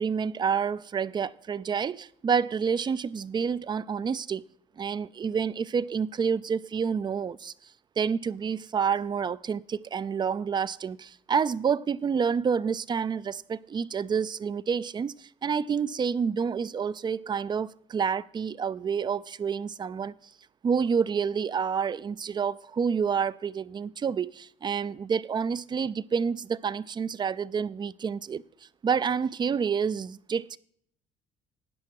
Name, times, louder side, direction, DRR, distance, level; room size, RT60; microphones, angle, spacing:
voice 1, 0.0-4.5 4.8-7.5 8.0-20.2 20.6-28.4 28.8-30.6, right 6 dB, 25° right, 0.4 m, -28 dB
13.0 x 9.5 x 4.6 m
cardioid pair, 110°, 17 cm